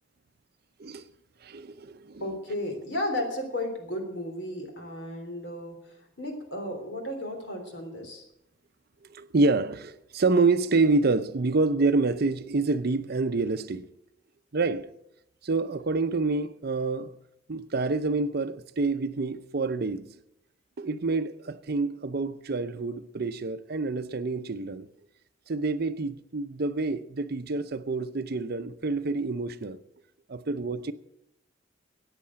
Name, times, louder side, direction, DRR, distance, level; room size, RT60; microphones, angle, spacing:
voice 1, 1.4-2.2 9.1-13.9 14.5-14.9 15.4-17.1 17.5-20.1 20.8-24.9 25.5-29.8 30.3-30.9, right 3 dB, 55° right, 0.6 m, -27 dB
voice 2, 2.2-8.2, left 1 dB, 65° left, 3.4 m, -34 dB
14.5 x 9.0 x 7.5 m
head